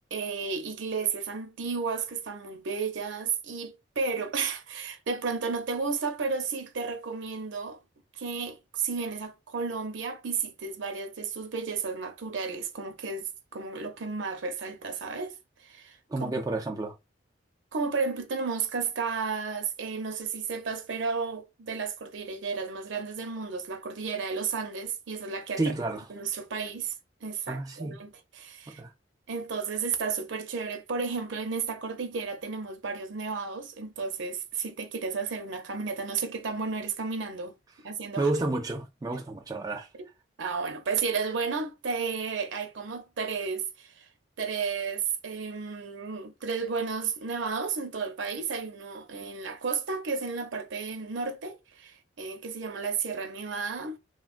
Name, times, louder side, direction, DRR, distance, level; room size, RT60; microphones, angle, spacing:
voice 1, 0.1-7.8 8.1-16.3 17.7-25.6 26.1-26.9 27.2-28.8 29.3-37.5 37.8-38.3 40.4-44.1 44.4-54.0, right 5 dB, 75° right, 0.6 m, -33 dB
voice 2, 16.1-16.9 25.6-26.1 27.5-28.0 28.7-28.9 38.2-39.9, right 2 dB, 20° right, 0.4 m, -30 dB
3.2 x 2.2 x 2.4 m
head